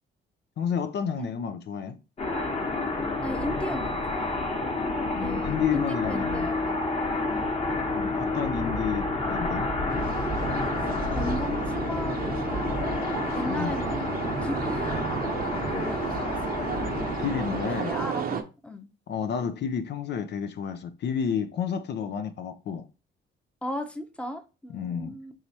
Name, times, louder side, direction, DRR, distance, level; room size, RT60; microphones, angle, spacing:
voice 1, 0.6-2.0 5.2-6.5 7.9-9.7 13.4-13.8 17.2-18.0 19.1-22.9 24.7-25.2, left 7 dB, 60° left, 0.5 m, -30 dB
sound 1, 2.2-18.2, left 2 dB, 30° left, 1.1 m, -29 dB
voice 2, 3.2-4.4 5.1-6.8 7.3-7.5 11.1-15.1 15.7-16.4 17.8-18.2 18.6-18.9 23.6-25.3, equal, 5° left, 0.7 m, -36 dB
sound 2, 9.9-18.4, right 7 dB, 50° right, 0.7 m, -33 dB
4.8 x 3.1 x 2.8 m
cardioid pair, 90°, 20 cm